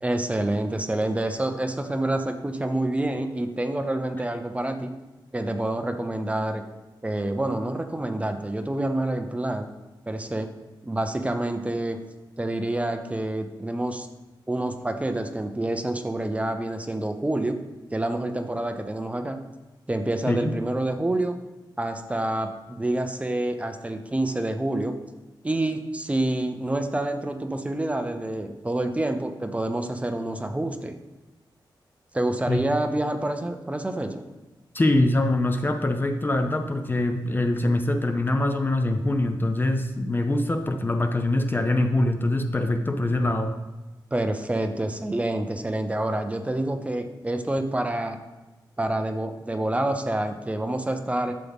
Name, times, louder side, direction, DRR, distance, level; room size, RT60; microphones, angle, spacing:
voice 1, 0.0-4.9 5.3-6.6 7.0-9.7 10.1-10.5 10.8-12.0 12.4-14.1 14.5-17.6 17.9-19.4 19.9-21.4 21.8-24.9 25.4-30.9 32.1-34.2 44.1-48.2 48.8-51.4, right 1 dB, 15° right, 6 dB, 0.7 m, -27 dB
voice 2, 34.7-43.5, left 1 dB, 25° left, 7 dB, 0.6 m, -24 dB
12.0 x 7.3 x 3.6 m, 1.1 s
wide cardioid pair, 140°, 8 cm